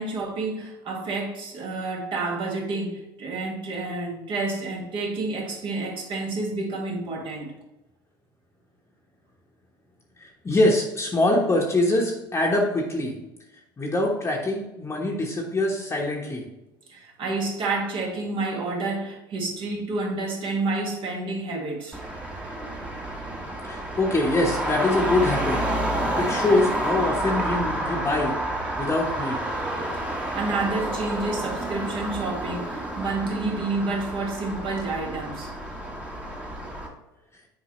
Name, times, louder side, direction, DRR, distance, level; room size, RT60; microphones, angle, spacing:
voice 1, 0.0-7.5 16.9-22.0 30.0-35.5, right 3 dB, 45° right, 1.8 m, -29 dB
voice 2, 10.2-13.1 13.8-16.4 23.7-25.6 26.2-28.3 28.8-29.4, left 2 dB, 20° left, 1.2 m, -24 dB
Traffic noise roadway noise, 21.9-36.9, right 1 dB, 10° right, 1.4 m, -29 dB
7.2 x 4.7 x 3.1 m
hypercardioid pair, 70°, 11 cm